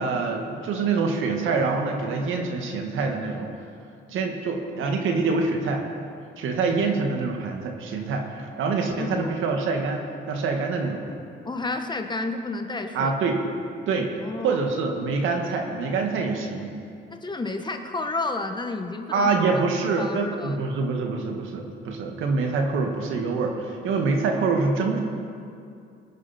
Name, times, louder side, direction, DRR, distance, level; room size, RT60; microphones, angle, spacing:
voice 1, 0.0-3.5 4.1-5.8 6.4-11.0 12.9-13.4 13.9-14.1 14.4-16.7 19.1-25.0, right 4 dB, 85° right, 2 dB, 1.8 m, -25 dB
voice 2, 9.0-9.4 11.4-13.1 14.2-14.6 17.1-20.6, left 2 dB, 20° left, 5 dB, 1.2 m, -31 dB
21.0 x 9.6 x 4.3 m, 2.4 s
cardioid pair, 90°, 20 cm